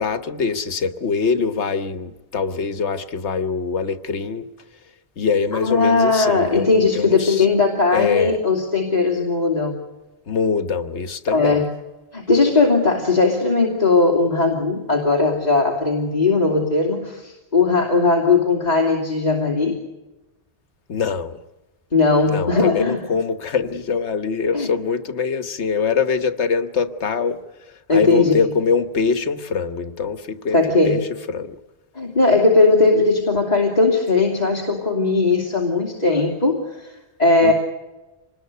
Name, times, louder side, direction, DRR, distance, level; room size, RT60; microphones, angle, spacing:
voice 1, 0.0-4.5 5.2-7.4 7.9-8.4 10.3-11.6 20.9-21.4 22.3-27.4 27.9-30.6 30.9-31.0 31.3-31.6 37.4-37.5, left 5 dB, 90° left, 10 dB, 1.5 m, -23 dB
voice 2, 5.5-9.8 11.3-11.7 12.1-19.8 21.9-23.0 24.5-24.7 27.9-28.4 30.5-31.0 31.9-36.9 37.2-37.5, left 3 dB, 40° left, -2 dB, 3.0 m, -18 dB
26.0 x 20.0 x 6.8 m, 1.1 s
omnidirectional pair, 1.1 m